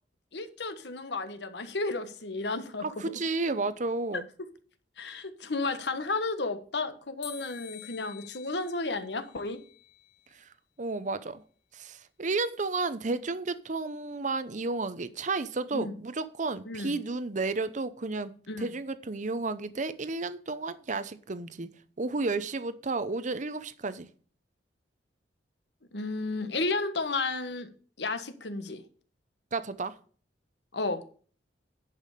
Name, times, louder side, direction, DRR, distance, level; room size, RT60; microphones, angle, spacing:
voice 1, 0.3-2.8 4.1-4.2 5.0-9.6 15.7-15.9 16.6-17.0 18.5-18.7 25.9-27.7 28.0-28.8 30.7-31.0, left 3 dB, 70° left, 1.3 m, -32 dB
voice 2, 2.8-4.2 10.3-10.5 10.8-11.4 11.7-21.7 22.0-24.1 29.5-30.0, right 3 dB, 45° right, 0.8 m, -32 dB
sound 1, 7.2-10.3, left 10 dB, 85° left, 1.9 m, -48 dB
11.0 x 5.6 x 6.5 m
head